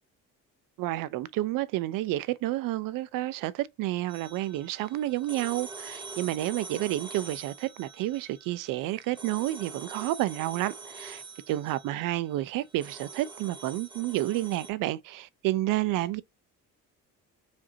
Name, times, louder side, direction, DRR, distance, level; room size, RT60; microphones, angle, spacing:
voice 1, 0.8-16.2, right 16 dB, 80° right, 0.5 m, -30 dB
sound 1, 4.1-14.7, right 3 dB, 15° right, 0.7 m, -45 dB
5.0 x 2.6 x 2.7 m
cardioid pair, 130°, 33 cm